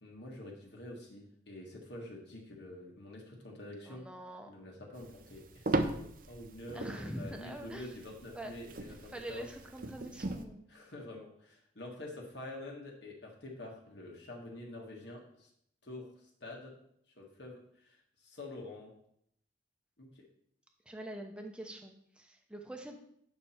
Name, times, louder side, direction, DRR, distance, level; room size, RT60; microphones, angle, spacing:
voice 1, 0.0-4.0 4.5-9.5 10.7-15.5 15.8-16.7 17.1-18.9 20.0-20.3, left 1 dB, 65° left, -1 dB, 1.5 m, -47 dB
voice 2, 3.9-4.5 6.7-7.9 8.3-8.5 8.9-10.7 20.9-23.0, right 1 dB, 5° right, 3 dB, 0.8 m, -44 dB
sound 1, 4.9-10.4, right 2 dB, 45° right, 0.6 m, -38 dB
8.5 x 5.9 x 4.3 m, 0.70 s
head